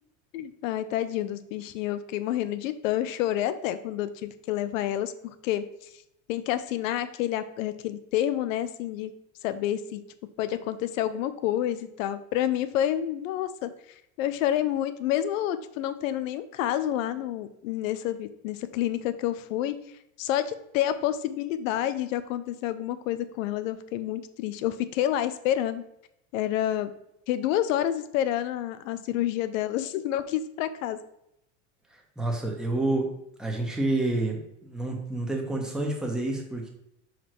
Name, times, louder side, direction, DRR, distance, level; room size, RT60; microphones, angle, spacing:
voice 1, 0.3-5.7 6.3-9.1 9.4-10.0 10.4-13.7 14.2-19.8 20.2-25.8 26.3-26.9 27.3-31.0, left 12 dB, 85° left, 13 dB, 0.7 m, -29 dB
voice 2, 31.9-33.1 33.4-36.7, right 2 dB, ahead, 0 dB, 1.2 m, -29 dB
5.4 x 4.9 x 4.5 m, 0.80 s
supercardioid pair, 135°, 39 cm